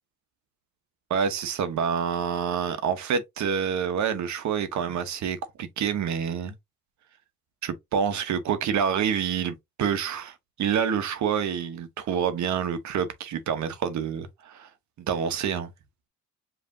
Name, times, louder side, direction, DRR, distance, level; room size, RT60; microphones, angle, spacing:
voice 1, 1.1-6.5 7.6-14.7 15.0-15.7, right 7 dB, 70° right, 1.0 m, -27 dB
5.1 x 3.2 x 2.7 m
cardioid pair, 90°, 30 cm